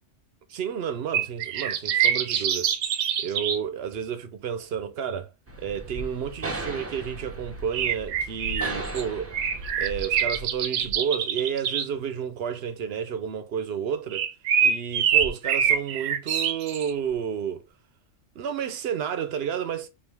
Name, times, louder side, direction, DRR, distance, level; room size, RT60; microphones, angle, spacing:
voice 1, 0.5-2.8 3.2-5.3 5.6-9.4 9.8-14.3 14.6-17.6 18.3-19.9, right 8 dB, 60° right, 0.8 m, -31 dB
sound 1, 1.1-3.6 7.7-9.0 9.3-11.9 14.1-16.9, right 8 dB, 80° right, 1.0 m, -25 dB
sound 2, 5.5-10.4, right 2 dB, 20° right, 0.4 m, -37 dB
4.5 x 2.5 x 3.3 m
omnidirectional pair, 1.3 m